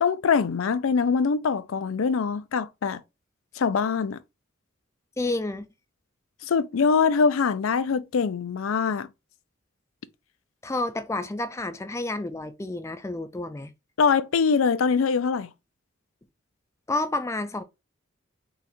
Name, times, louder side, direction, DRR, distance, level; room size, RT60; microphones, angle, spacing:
voice 1, 0.0-3.0 3.6-4.2 6.5-9.1 14.0-15.5, left 5 dB, 80° left, 0.4 m, -23 dB
voice 2, 5.2-5.7 10.6-13.7 16.9-17.6, left 2 dB, 15° left, 0.4 m, -30 dB
3.9 x 2.4 x 4.2 m
head